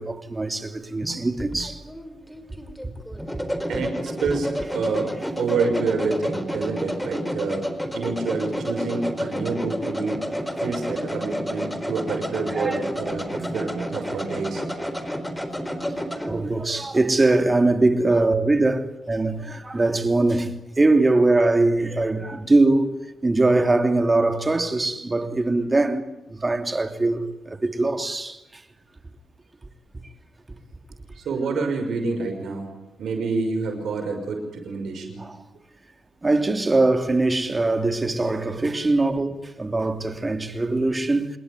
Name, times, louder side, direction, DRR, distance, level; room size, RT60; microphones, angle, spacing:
voice 1, 0.0-1.8 12.5-12.8 14.0-14.1 16.2-22.9 23.2-26.0 26.3-28.4 35.2-35.4 36.2-41.4, right 2 dB, 30° right, 3.0 m, -22 dB
sound 1, 1.0-16.3, equal, 5° left, 4.4 m, -30 dB
voice 2, 3.7-5.1 5.4-7.7 7.9-10.2 10.6-14.6 31.2-32.7 33.0-35.2, right 4 dB, 80° right, 5.9 m, -28 dB
27.5 x 20.5 x 9.7 m
supercardioid pair, 55°, 0 cm